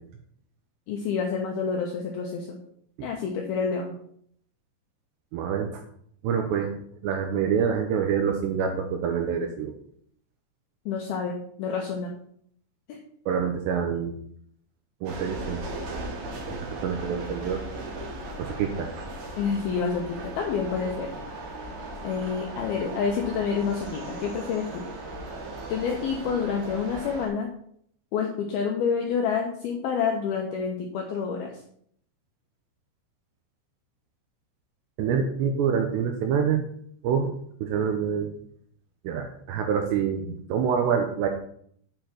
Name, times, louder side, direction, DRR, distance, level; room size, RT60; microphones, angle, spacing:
voice 1, 0.9-2.6 3.0-3.9 10.9-12.2 19.4-21.1 22.0-24.9 25.7-27.5 28.1-31.5, left 6 dB, 85° left, 1 dB, 2.1 m, -28 dB
voice 2, 5.3-5.8 6.2-9.7 13.3-14.1 15.0-15.6 16.8-17.6 18.4-18.9 35.0-36.6 37.0-37.3 37.6-38.3 39.0-41.3, right 7 dB, 80° right, 4 dB, 2.6 m, -26 dB
sound 1, 15.0-27.3, right 2 dB, 55° right, 2.3 m, -37 dB
9.2 x 4.5 x 5.8 m, 0.65 s
omnidirectional pair, 5.6 m